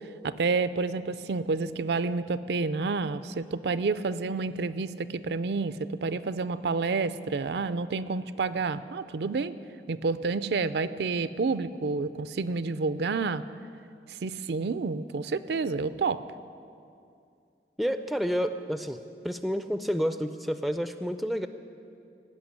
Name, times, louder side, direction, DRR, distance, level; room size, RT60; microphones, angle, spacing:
voice 1, 0.2-9.6 9.9-13.4 14.2-16.2, right 4 dB, 70° right, 14 dB, 0.4 m, -29 dB
voice 2, 17.8-19.0 19.2-21.5, equal, ahead, 9 dB, 0.4 m, -29 dB
17.5 x 5.9 x 9.8 m, 2.5 s
head